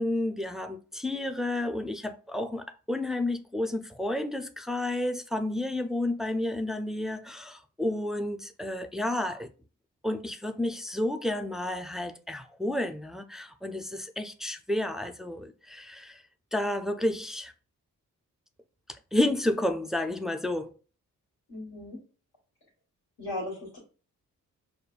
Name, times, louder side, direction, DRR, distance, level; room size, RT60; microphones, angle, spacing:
voice 1, 0.0-9.5 10.0-16.2 16.5-17.5 19.1-20.7, left 1 dB, ahead, 0.4 m, -31 dB
voice 2, 21.5-22.0 23.2-23.8, left 1 dB, 75° left, 1.6 m, -36 dB
5.0 x 2.1 x 2.4 m
supercardioid pair, 40°, 38 cm